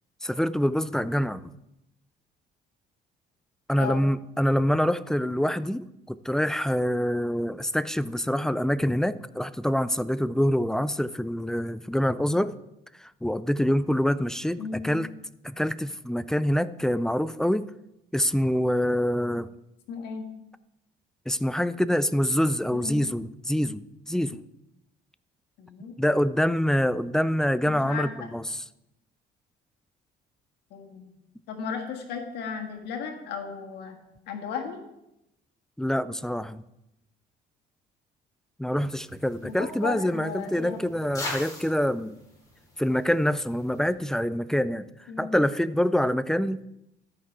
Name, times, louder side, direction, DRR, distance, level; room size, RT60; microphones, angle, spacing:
voice 1, 0.2-1.4 3.7-12.5 13.0-15.1 15.6-17.6 18.1-19.5 21.3-24.4 26.0-28.6 35.8-36.6 38.6-42.1 42.8-44.9 45.2-46.7, equal, 5° left, 16 dB, 0.3 m, -25 dB
voice 2, 14.6-15.0 19.9-20.3 22.7-23.0 25.6-25.9 27.6-28.1 30.7-31.1 31.5-34.0 34.3-34.8 39.4-40.8 45.1-45.4, left 6 dB, 85° left, 4 dB, 1.7 m, -35 dB
sound 1, 38.8-43.9, left 2 dB, 20° left, 3.7 m, -42 dB
13.0 x 5.9 x 4.7 m, 0.87 s
cardioid pair, 110°, 17 cm